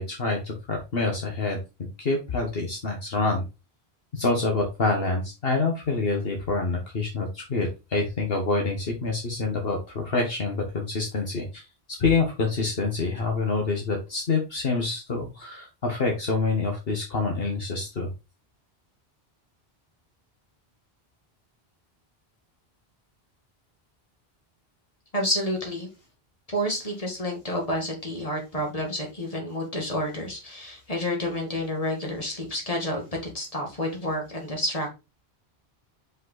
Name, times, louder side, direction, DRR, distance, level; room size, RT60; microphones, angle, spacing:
voice 1, 0.0-1.6 2.0-3.4 4.1-11.6 12.0-18.1, left 3 dB, 65° left, 2 dB, 1.5 m, -26 dB
voice 2, 25.1-25.9 26.5-33.0 33.3-34.9, equal, 35° left, 1 dB, 2.3 m, -29 dB
5.4 x 5.2 x 4.0 m, 0.27 s
omnidirectional pair, 1.1 m